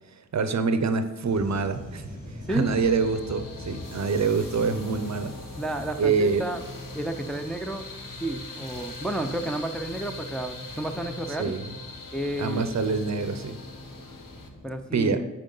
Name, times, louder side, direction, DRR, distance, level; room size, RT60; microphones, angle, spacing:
voice 1, 0.3-5.3 6.0-6.5 11.4-11.7 12.4-13.6 14.9-15.2, right 4 dB, 55° right, 10 dB, 0.5 m, -26 dB
sound 1, 1.2-14.8, equal, 30° left, 2.5 m, -44 dB
sound 2, 2.5-14.5, left 2 dB, 80° left, 0.9 m, -41 dB
voice 2, 5.6-6.6 7.0-7.9 8.2-11.5 12.1-12.6 14.6-15.3, right 1 dB, 5° left, 5 dB, 0.4 m, -31 dB
9.1 x 4.5 x 3.8 m, 1.1 s
wide cardioid pair, 105°, 33 cm